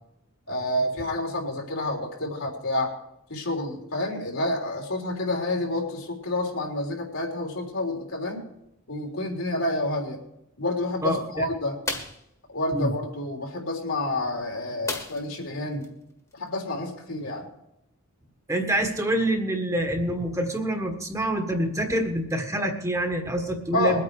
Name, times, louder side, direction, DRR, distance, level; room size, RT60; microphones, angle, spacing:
voice 1, 0.5-2.9 3.3-8.5 8.9-10.2 10.6-11.8 12.5-15.8 16.3-17.5 23.7-24.0, left 1 dB, 75° left, 0 dB, 3.6 m, -29 dB
voice 2, 11.0-11.5 12.7-12.9 18.5-24.0, right 1 dB, 15° right, 4 dB, 1.5 m, -26 dB
sound 1, 11.8-12.3 14.9-15.4 15.8-15.9 16.3-16.5, left 2 dB, 15° left, 1.6 m, -32 dB
21.5 x 8.8 x 4.8 m, 0.80 s
head